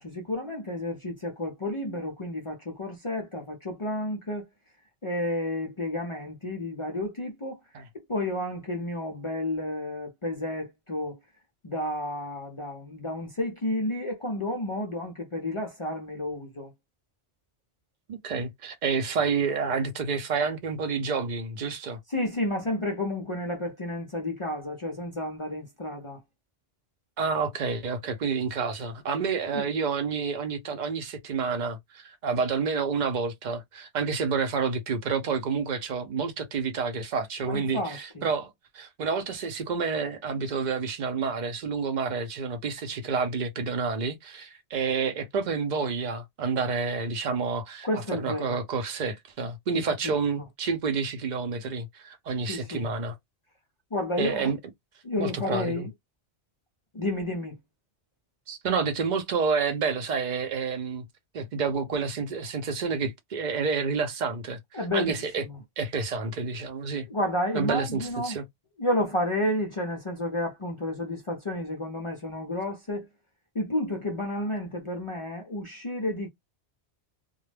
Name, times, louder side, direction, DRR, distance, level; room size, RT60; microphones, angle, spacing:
voice 1, 0.0-4.5 5.0-7.6 7.9-11.2 11.6-16.7 22.1-26.2 29.5-29.7 37.4-38.3 47.8-48.6 49.8-50.1 52.5-52.9 53.9-54.5 55.0-55.9 56.9-57.6 64.7-65.6 67.1-68.4 68.8-73.1 73.5-76.3, left 1 dB, 40° left, 0.5 m, -31 dB
voice 2, 18.1-22.0 27.2-53.2 54.2-54.6 55.2-55.9 58.5-61.1 61.3-64.6 64.9-65.4 65.8-67.1 67.5-68.4, right 5 dB, 50° right, 0.7 m, -29 dB
2.3 x 2.0 x 3.2 m
omnidirectional pair, 1.1 m